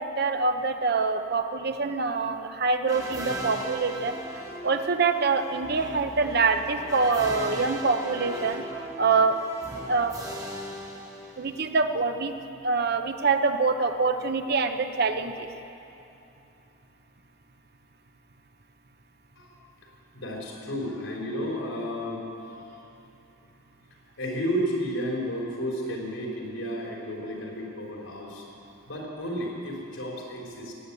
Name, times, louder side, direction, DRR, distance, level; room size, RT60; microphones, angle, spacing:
voice 1, 0.0-4.2 4.6-8.6 9.0-9.4 9.9-10.1 11.4-12.3 12.6-15.5, right 4 dB, 55° right, 8 dB, 0.8 m, -25 dB
sound 1, 2.9-11.8, right 1 dB, 15° right, 1.4 m, -38 dB
voice 2, 20.1-22.8 24.2-28.5 28.8-30.7, equal, 85° left, -1 dB, 4.0 m, -32 dB
16.5 x 9.6 x 8.4 m, 2.8 s
head